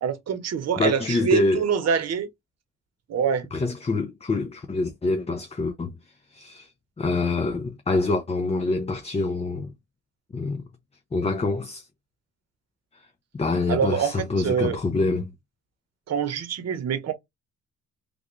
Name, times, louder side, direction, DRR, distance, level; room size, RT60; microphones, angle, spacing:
voice 1, 0.0-2.3 3.1-3.5 13.7-14.8 16.1-17.1, right 7 dB, 60° right, 1.0 m, -25 dB
voice 2, 0.8-1.6 3.5-6.0 6.3-6.7 7.0-9.7 10.3-10.6 11.1-11.8 12.9-13.0 13.3-15.3, left 3 dB, 20° left, 0.6 m, -26 dB
3.4 x 2.4 x 3.0 m
cardioid pair, 90°, 30 cm